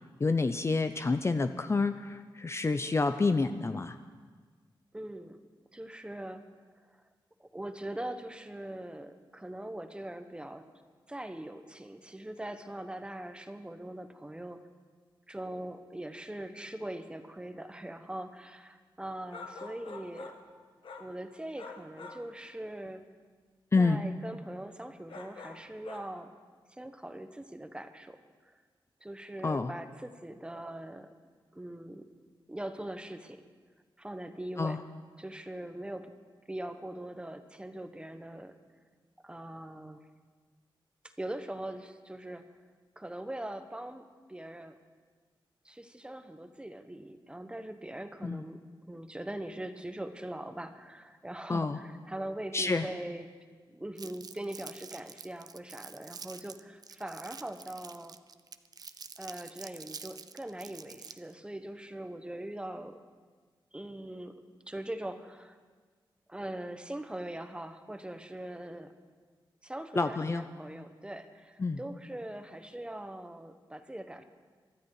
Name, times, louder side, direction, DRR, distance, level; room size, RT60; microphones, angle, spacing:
voice 1, 0.2-4.0 23.7-24.0 29.4-29.7 34.6-34.8 48.2-48.4 51.5-51.8 52.5-52.9 70.0-70.4 71.6-71.8, left 3 dB, 30° left, 9 dB, 0.6 m, -28 dB
voice 2, 4.9-5.4 5.7-6.4 7.4-10.7 11.1-14.6 15.3-20.3 21.0-23.0 23.8-26.3 26.8-28.2 28.4-28.6 29.0-31.1 31.5-32.0 32.5-33.4 34.0-34.8 35.2-36.1 36.5-38.5 39.2-40.0 41.0-42.4 43.0-44.8 45.6-53.3 53.7-58.2 59.2-63.0 63.7-64.3 64.7-65.6 66.3-68.9 69.6-74.2, right 1 dB, 10° right, 8 dB, 1.1 m, -41 dB
sound 1, 19.3-20.5 20.8-21.2 21.6-22.3 25.1-26.1, left 4 dB, 85° left, 1.4 m, -46 dB
Crumpling crinkling, 54.0-61.3, right 5 dB, 50° right, 0.6 m, -47 dB
23.0 x 12.5 x 4.8 m, 1.5 s
wide cardioid pair, 95°, 9 cm